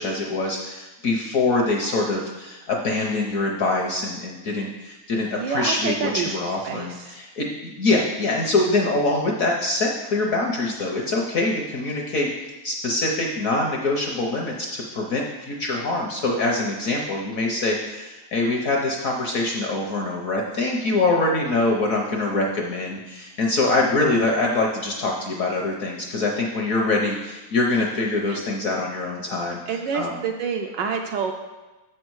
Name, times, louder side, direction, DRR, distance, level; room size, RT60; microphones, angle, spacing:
voice 1, 0.0-12.3 12.6-30.2, left 2 dB, 60° left, 0 dB, 0.9 m, -24 dB
voice 2, 5.1-6.4 6.6-7.1 28.1-28.4 29.7-31.3, right 6 dB, 75° right, 4 dB, 1.1 m, -28 dB
7.4 x 6.4 x 4.7 m, 1.1 s
omnidirectional pair, 2.3 m